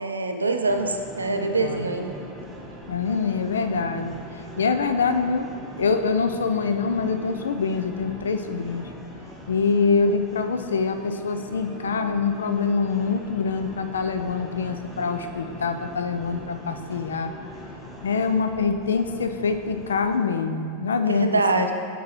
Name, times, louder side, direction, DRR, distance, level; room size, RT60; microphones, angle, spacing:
voice 1, 0.0-2.2 21.0-21.7, right 3 dB, 80° right, 5 dB, 0.4 m, -24 dB
sound 1, 0.6-20.2, left 1 dB, ahead, 1.0 m, -41 dB
voice 2, 1.3-1.9 2.9-4.1 4.6-5.5 5.8-8.9 9.5-17.3 18.0-21.7, left 5 dB, 70° left, 8 dB, 0.3 m, -25 dB
7.3 x 5.3 x 3.1 m, 2.4 s
figure-of-eight pair, 90°, 0 cm